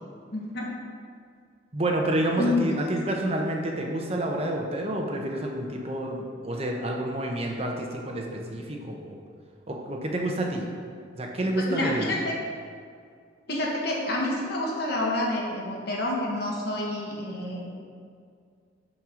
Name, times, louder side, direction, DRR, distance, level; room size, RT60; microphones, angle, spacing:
voice 1, 0.3-0.7 2.4-2.8 11.5-12.3 13.5-17.7, left 1 dB, 60° left, -2 dB, 1.5 m, -28 dB
voice 2, 1.7-9.2 9.7-10.6 11.1-12.1, right 1 dB, 35° right, 1 dB, 0.8 m, -29 dB
5.9 x 5.3 x 6.3 m, 2.1 s
head